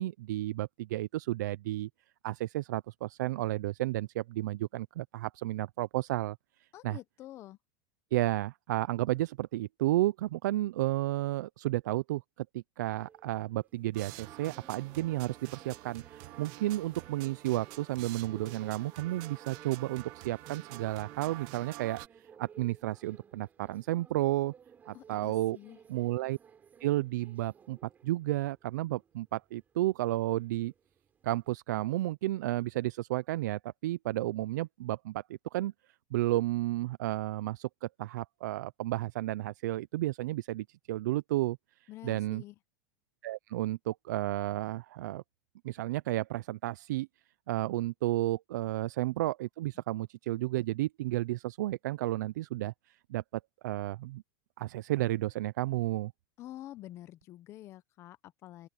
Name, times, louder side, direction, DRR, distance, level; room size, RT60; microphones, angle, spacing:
voice 1, 0.0-1.9 2.2-7.0 8.1-24.5 24.9-25.6 25.9-26.4 26.8-30.7 31.2-35.7 36.1-42.4 43.2-45.2 45.6-47.1 47.5-53.2 53.6-54.2 54.6-56.1, right 16 dB, 90° right, 0.4 m, -32 dB
voice 2, 6.7-7.6 24.9-25.8 41.9-42.6 56.4-58.7, left 14 dB, 30° left, 0.7 m, -48 dB
sound 1, 13.1-31.5, right 7 dB, 20° right, 5.0 m, -57 dB
sound 2, 13.9-22.1, right 19 dB, 45° right, 1.5 m, -48 dB
open air
supercardioid pair, 165°, 9 cm